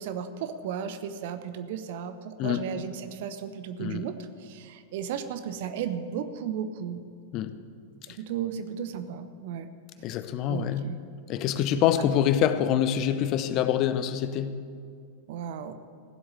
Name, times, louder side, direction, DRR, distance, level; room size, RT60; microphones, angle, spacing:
voice 1, 0.0-4.1 4.4-7.0 8.2-9.7 10.5-11.0 12.0-12.1 15.3-15.7, right 8 dB, 50° right, 10 dB, 0.9 m, -34 dB
voice 2, 10.0-10.9 11.3-14.6, left 10 dB, 40° left, 11 dB, 0.8 m, -25 dB
16.0 x 7.9 x 8.2 m, 2.3 s
figure-of-eight pair, 90°, 0 cm